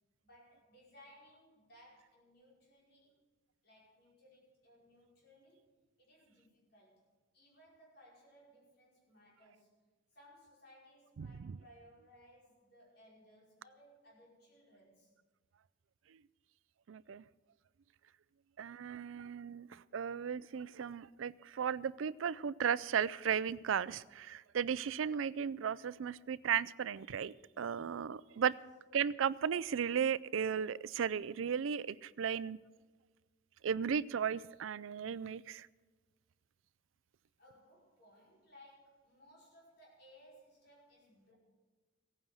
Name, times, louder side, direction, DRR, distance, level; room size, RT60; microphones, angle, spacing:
voice 1, 0.2-3.2 3.6-7.0 7.3-9.7 10.1-15.1 28.3-28.5 37.4-41.3, equal, 55° left, -4 dB, 5.2 m, -62 dB
voice 2, 11.2-11.6 16.9-17.2 18.6-19.7 19.9-28.5 28.9-32.6 33.6-35.7, right 7 dB, 85° right, 19 dB, 0.4 m, -35 dB
16.5 x 9.2 x 6.3 m, 1.3 s
head